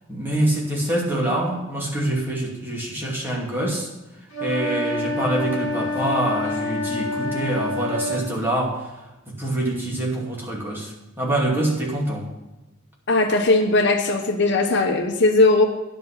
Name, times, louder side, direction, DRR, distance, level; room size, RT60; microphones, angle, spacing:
voice 1, 0.1-3.9 4.4-12.3, right 1 dB, 10° right, -3 dB, 2.4 m, -25 dB
sound 1, 4.3-8.3, left 2 dB, 30° left, 4.2 m, -27 dB
voice 2, 13.1-15.7, left 2 dB, 55° left, 4 dB, 1.0 m, -18 dB
11.0 x 7.5 x 5.7 m, 1.1 s
head